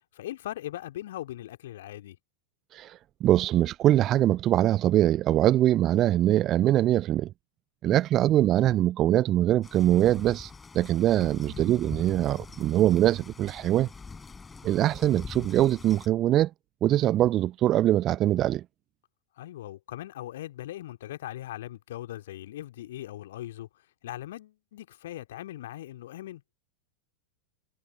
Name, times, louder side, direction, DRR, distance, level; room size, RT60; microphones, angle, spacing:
voice 1, 0.1-2.2 7.8-8.0 11.1-11.7 19.4-26.4, left 14 dB, 55° left, 2.5 m, -40 dB
voice 2, 3.2-7.3 7.8-10.5 10.7-13.9 14.6-16.5 16.8-18.6, right 13 dB, 30° right, 0.6 m, -23 dB
sound 1, 9.6-16.1, left 4 dB, 15° left, 5.7 m, -44 dB
figure-of-eight pair, 90°, 0 cm